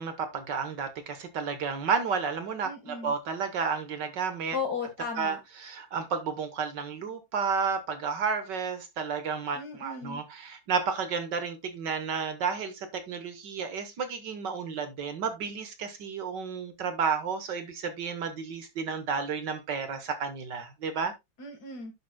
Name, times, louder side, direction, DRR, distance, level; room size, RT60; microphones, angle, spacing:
voice 1, 0.0-4.6 5.2-21.1, right 5 dB, 60° right, 1.7 m, -32 dB
voice 2, 2.6-3.1 4.5-5.4 9.5-10.2 21.4-21.9, left 5 dB, 50° left, 2.2 m, -35 dB
10.5 x 7.0 x 2.2 m
omnidirectional pair, 2.2 m